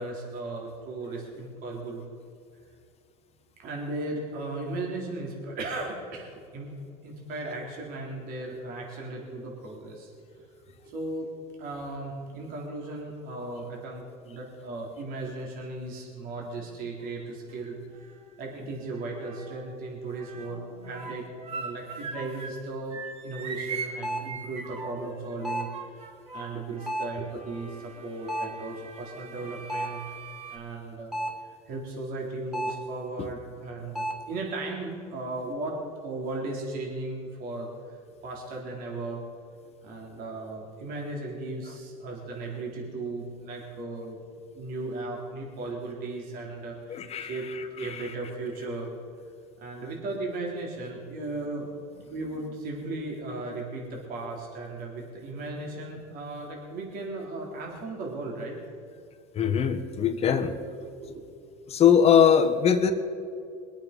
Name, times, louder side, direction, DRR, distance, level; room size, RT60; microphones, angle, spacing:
voice 1, 0.0-2.0 3.6-6.7 7.0-10.1 10.4-10.5 10.8-11.3 11.6-26.0 26.3-30.2 30.5-31.2 31.4-38.0 38.2-39.2 39.8-44.2 44.5-48.9 49.6-51.8 52.1-58.6 60.1-60.3 60.8-61.2, right 2 dB, 55° right, -1 dB, 3.8 m, -36 dB
sound 1, 17.0-17.6 17.9-19.7 20.1-22.6 22.9-30.6, right 5 dB, 35° right, 2.4 m, -41 dB
sound 2, 24.0-24.4 25.4-25.8 26.9-27.3 28.3-28.6 29.7-30.1 31.1-31.5 32.5-32.9 33.9-34.3, equal, 5° right, 2.9 m, -32 dB
voice 2, 46.9-48.0 59.3-60.5 61.7-62.9, left 8 dB, 35° left, 6 dB, 1.5 m, -22 dB
23.0 x 8.7 x 5.3 m, 2.4 s
supercardioid pair, 115°, 18 cm